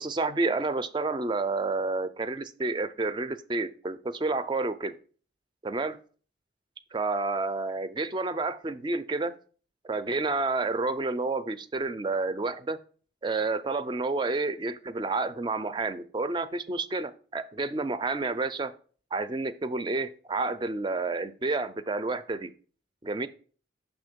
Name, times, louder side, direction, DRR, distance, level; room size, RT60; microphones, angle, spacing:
voice 1, 0.0-4.9 5.6-6.0 6.9-9.3 9.8-12.8 13.2-18.7 19.1-22.5 23.0-23.3, right 3 dB, 25° right, 13 dB, 0.3 m, -30 dB
6.1 x 3.5 x 5.1 m, 0.42 s
head